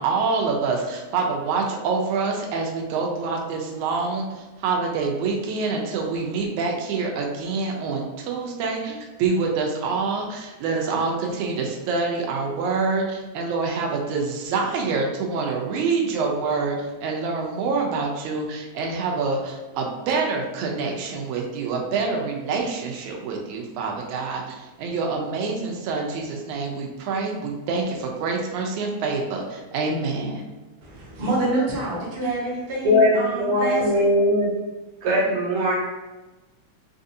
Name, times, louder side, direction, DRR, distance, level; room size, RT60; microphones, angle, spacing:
voice 1, 0.0-30.4, right 4 dB, 85° right, 1 dB, 2.0 m, -26 dB
voice 2, 30.8-34.1, right 2 dB, 40° right, -7 dB, 0.9 m, -27 dB
voice 3, 32.8-34.5 35.0-35.8, left 1 dB, 70° right, -4 dB, 2.2 m, -20 dB
5.5 x 2.6 x 2.6 m, 1.2 s
omnidirectional pair, 3.3 m